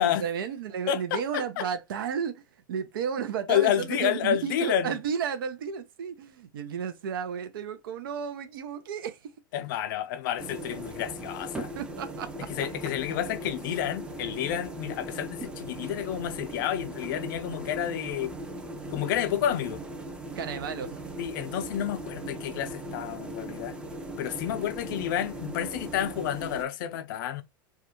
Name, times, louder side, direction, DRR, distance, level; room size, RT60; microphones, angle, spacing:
voice 1, 0.0-2.4 2.7-9.2 11.8-12.5 20.4-21.0, right 7 dB, 80° right, 0.4 m, -33 dB
voice 2, 0.9-1.7 3.5-5.0 9.5-11.7 12.6-18.3 18.9-19.8 21.2-23.8 24.2-27.4, left 10 dB, 65° left, 0.4 m, -30 dB
sound 1, 10.4-26.6, right 1 dB, 10° right, 0.4 m, -39 dB
2.3 x 2.1 x 2.8 m
hypercardioid pair, 105°, 11 cm